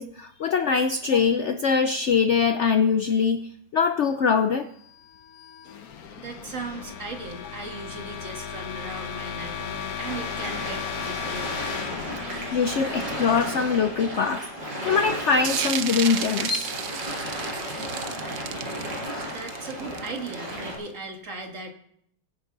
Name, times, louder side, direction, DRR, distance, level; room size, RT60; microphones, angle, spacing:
voice 1, 0.0-4.7 12.5-16.8, left 5 dB, 90° left, 9 dB, 0.6 m, -23 dB
sound 1, 5.0-14.7, left 7 dB, 60° left, 1.3 m, -36 dB
voice 2, 6.2-11.6 19.3-21.7, right 3 dB, 45° right, 3 dB, 2.1 m, -37 dB
sound 2, 10.1-20.7, equal, 85° right, 5.6 m, -34 dB
sound 3, 15.4-20.8, right 9 dB, 65° right, 1.2 m, -33 dB
22.0 x 9.8 x 3.9 m, 0.71 s
omnidirectional pair, 1.9 m